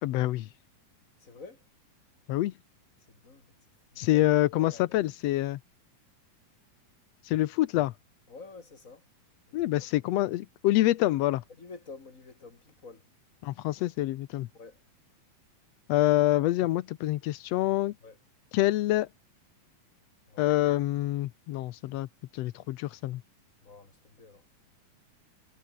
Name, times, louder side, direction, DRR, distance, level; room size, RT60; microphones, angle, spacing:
voice 1, 0.0-0.5 2.3-2.5 4.0-5.6 7.2-7.9 9.5-11.4 13.4-14.5 15.9-17.9 18.5-19.1 20.4-22.1 22.3-23.2, left 15 dB, 85° left, 1.4 m, -26 dB
voice 2, 1.2-1.6 3.1-3.5 3.9-4.3 4.5-5.0 8.3-9.0 11.6-13.0 14.5-14.8 18.0-18.2 20.3-20.6 23.6-24.5, left 4 dB, 25° left, 3.6 m, -49 dB
omnidirectional pair, 3.9 m